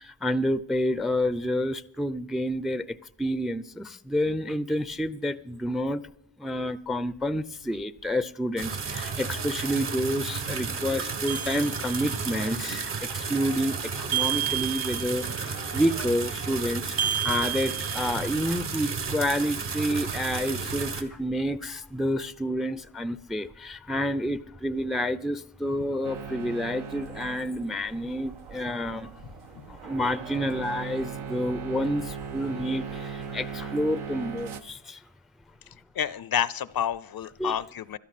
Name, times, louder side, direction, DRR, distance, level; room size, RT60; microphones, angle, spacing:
voice 1, 0.0-6.0 6.4-29.1 29.7-35.0 37.4-37.6, equal, ahead, 0.5 m, -29 dB
sound 1, 8.6-21.0, right 5 dB, 60° right, 1.7 m, -33 dB
sound 2, 11.3-12.3 14.1-15.4 17.0-18.5, right 11 dB, 30° right, 0.9 m, -31 dB
sound 3, 26.0-34.6, right 6 dB, 80° right, 1.1 m, -39 dB
voice 2, 36.0-38.0, left 9 dB, 50° left, 0.6 m, -29 dB
17.0 x 12.5 x 4.2 m
cardioid pair, 70°, 48 cm